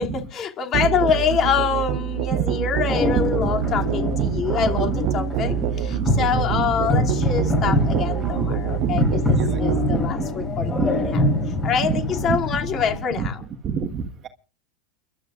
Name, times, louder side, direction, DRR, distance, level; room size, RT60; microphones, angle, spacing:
voice 1, 0.0-9.2 9.6-10.9 11.6-13.4, left 7 dB, 35° left, 2.7 m, -25 dB
Musical instrument, 0.7-10.0, right 13 dB, 55° right, 0.7 m, -26 dB
sound 1, 2.9-13.0, left 2 dB, 15° left, 7.4 m, -25 dB
voice 2, 4.1-4.9 6.0-7.1 7.9-8.5 8.8-10.1 10.7-11.1 11.8-12.7 13.2-14.3, right 6 dB, 35° right, 1.4 m, -29 dB
29.0 x 12.0 x 2.5 m
supercardioid pair, 130°, 0 cm